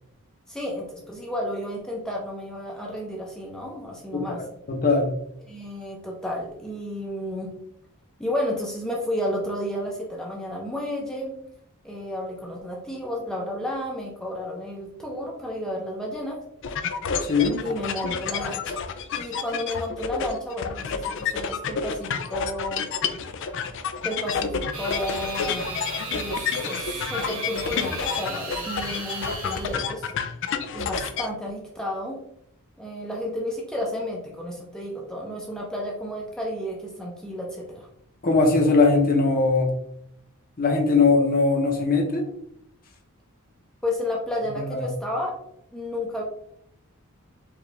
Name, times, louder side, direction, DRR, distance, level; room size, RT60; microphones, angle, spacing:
voice 1, 0.5-4.4 5.5-7.5 8.2-11.3 11.8-16.4 17.6-18.8 19.2-22.8 24.0-25.8 26.1-30.1 30.7-32.2 32.8-37.9 43.8-45.3 45.7-46.2, left 1 dB, 5° left, -2 dB, 0.6 m, -32 dB
voice 2, 4.1-5.1 17.2-17.6 38.2-39.7 40.6-42.2 44.5-44.9, left 3 dB, 40° left, 1 dB, 0.8 m, -20 dB
sound 1, 16.6-31.3, left 6 dB, 55° left, 0.4 m, -29 dB
sound 2, 24.7-29.8, right 3 dB, 65° right, 1.2 m, -36 dB
4.9 x 2.4 x 3.3 m, 0.73 s
head